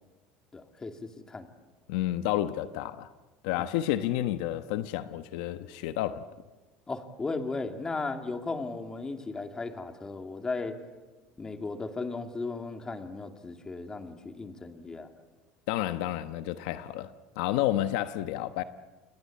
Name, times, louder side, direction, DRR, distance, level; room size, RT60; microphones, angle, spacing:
voice 1, 0.5-1.5 3.6-3.7 6.9-10.8 11.4-15.1, left 3 dB, 15° left, 2.5 m, -36 dB
voice 2, 1.9-3.1 3.4-6.2 15.7-17.1 17.4-18.6, left 13 dB, 80° left, 1.1 m, -30 dB
29.0 x 22.5 x 8.6 m
supercardioid pair, 130°, 4 cm